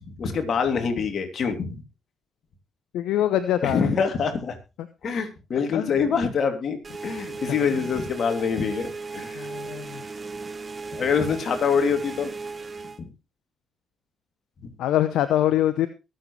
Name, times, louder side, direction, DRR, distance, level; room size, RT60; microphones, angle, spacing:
voice 1, 0.0-1.8 3.6-4.6 5.0-6.8 7.0-9.5 10.9-12.3 14.6-14.7, left 6 dB, 60° left, 6 dB, 2.9 m, -25 dB
voice 2, 2.9-3.9 5.7-5.9 7.6-7.7 9.4-10.0 14.8-15.9, left 12 dB, 80° left, 12 dB, 0.8 m, -24 dB
sound 1, 6.8-13.0, right 4 dB, 40° right, 1.3 m, -36 dB
22.5 x 7.8 x 3.2 m, 0.28 s
supercardioid pair, 55°, 0 cm